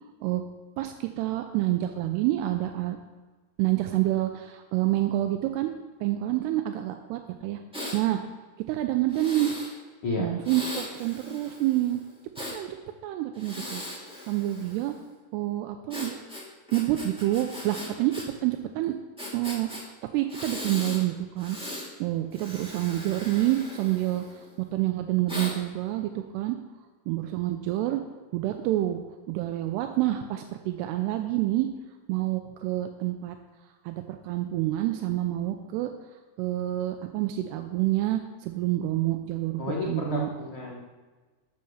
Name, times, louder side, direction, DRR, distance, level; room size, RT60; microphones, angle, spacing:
voice 1, 0.8-3.0 3.6-5.7 6.0-7.6 7.9-8.2 8.7-9.5 10.2-12.0 12.5-12.8 13.0-13.8 14.3-15.0 15.3-16.1 16.7-18.2 18.4-19.0 19.3-21.6 22.0-24.4 24.7-26.6 27.1-28.0 28.3-31.7 32.1-33.4 33.9-35.9 36.4-40.3, right 15 dB, 85° right, 6 dB, 2.7 m, -28 dB
Breathing, 7.7-8.0 9.1-9.7 10.4-12.6 13.3-15.0 15.9-18.3 18.5-18.6 19.2-19.8 20.3-21.0 21.4-21.9 22.3-24.5 25.3-25.5, left 1 dB, ahead, 1.2 m, -39 dB
voice 2, 39.6-40.8, left 3 dB, 90° left, -3 dB, 1.1 m, -31 dB
13.0 x 5.8 x 6.4 m, 1.3 s
omnidirectional pair, 4.7 m